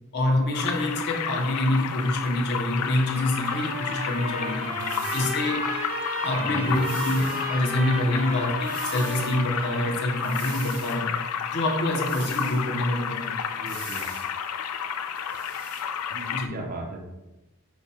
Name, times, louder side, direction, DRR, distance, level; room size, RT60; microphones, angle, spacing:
voice 1, 0.1-4.6 5.1-5.6 6.2-11.1 11.5-13.7 16.3-16.5, left 1 dB, 50° left, 0 dB, 0.7 m, -26 dB
sound 1, 0.5-16.5, left 7 dB, 85° left, 0.3 m, -32 dB
Trumpet, 3.1-10.6, equal, 65° right, 1.4 m, -34 dB
voice 2, 4.6-5.1 6.4-6.7 13.5-14.1 16.1-17.0, right 2 dB, 40° right, 1 dB, 0.5 m, -38 dB
sound 2, 4.8-5.5 6.7-7.5 8.6-9.4 10.2-11.0 12.0-12.7 13.7-14.3 15.2-15.9, right 5 dB, 85° right, 0.9 m, -42 dB
4.9 x 2.2 x 4.1 m, 0.99 s
head